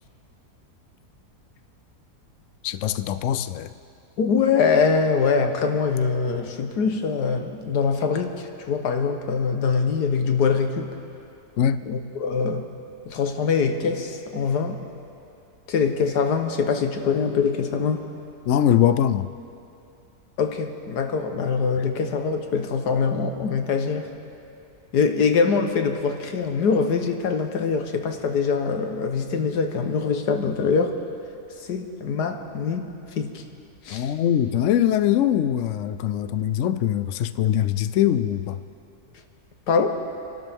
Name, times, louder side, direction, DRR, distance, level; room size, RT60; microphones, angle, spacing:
voice 1, 2.6-3.7 11.6-11.8 18.5-19.3 33.9-38.6, left 10 dB, 70° left, 12 dB, 0.7 m, -22 dB
voice 2, 4.2-10.9 11.9-12.7 13.1-14.8 15.7-18.1 20.4-24.1 24.9-31.0 31.6-33.4 33.8-34.1 39.7-40.0, left 5 dB, 85° left, 5 dB, 1.6 m, -23 dB
28.5 x 12.0 x 3.6 m, 2.6 s
omnidirectional pair, 1.7 m